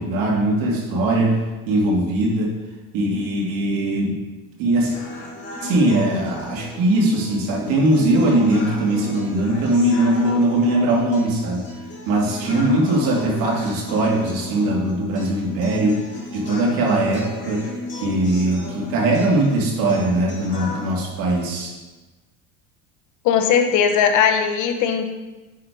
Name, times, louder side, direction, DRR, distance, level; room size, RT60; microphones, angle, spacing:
voice 1, 0.0-1.4 1.7-2.6 2.9-4.1 4.6-4.9 5.6-11.7 12.1-16.0 16.3-17.7 18.0-21.7, right 1 dB, 55° right, -1 dB, 2.5 m, -20 dB
sound 1, 4.9-20.9, left 2 dB, 25° left, 2.8 m, -35 dB
voice 2, 23.2-25.1, left 7 dB, 45° left, 6 dB, 1.0 m, -18 dB
9.8 x 4.4 x 4.6 m, 1.2 s
cardioid pair, 145°, 41 cm